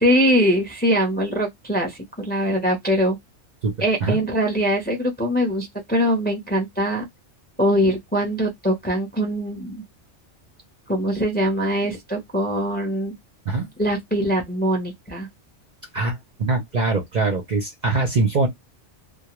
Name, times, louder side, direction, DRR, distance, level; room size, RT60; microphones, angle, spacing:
voice 1, 0.0-3.2 3.8-7.0 7.6-9.8 10.9-13.1 13.8-15.3, equal, 10° left, 0.5 m, -22 dB
voice 2, 15.9-18.5, right 3 dB, 50° right, 0.6 m, -22 dB
2.2 x 2.1 x 2.9 m
omnidirectional pair, 1.2 m